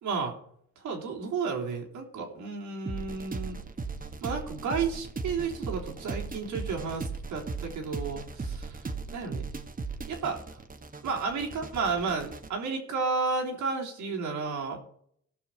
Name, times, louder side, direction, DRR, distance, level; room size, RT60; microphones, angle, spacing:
voice 1, 0.0-0.3 0.8-3.6 4.2-9.4 10.0-10.4 11.0-14.8, right 4 dB, 80° right, 1 dB, 3.4 m, -32 dB
sound 1, 2.9-12.5, right 4 dB, 30° right, 1.5 m, -37 dB
17.5 x 6.1 x 4.5 m, 0.67 s
cardioid pair, 90°, 30 cm